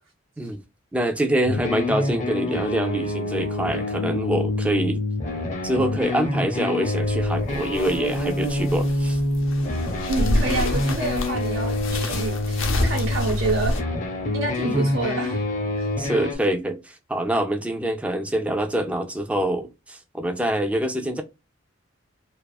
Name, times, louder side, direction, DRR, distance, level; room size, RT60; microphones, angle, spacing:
voice 1, 0.9-5.0 5.6-9.2 14.6-14.9 16.0-21.2, right 1 dB, 5° right, 0.3 m, -25 dB
sound 1, 1.5-16.4, left 2 dB, 40° left, 0.7 m, -26 dB
sound 2, 7.0-13.8, left 1 dB, 85° left, 0.6 m, -29 dB
voice 2, 10.1-13.8 14.3-15.4 15.8-15.9, right 3 dB, 85° right, 0.8 m, -28 dB
2.4 x 2.3 x 2.3 m
head